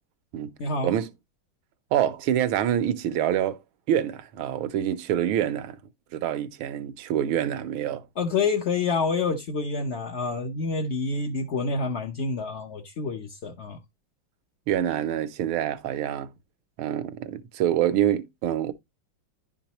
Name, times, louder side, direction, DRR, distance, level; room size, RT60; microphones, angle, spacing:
voice 1, 0.6-0.9 8.2-13.8, left 4 dB, 60° left, 0.6 m, -28 dB
voice 2, 1.9-3.6 3.9-5.8 6.1-8.1 14.7-16.3 16.8-18.7, right 10 dB, 85° right, 1.6 m, -26 dB
11.0 x 5.1 x 2.9 m
omnidirectional pair, 2.2 m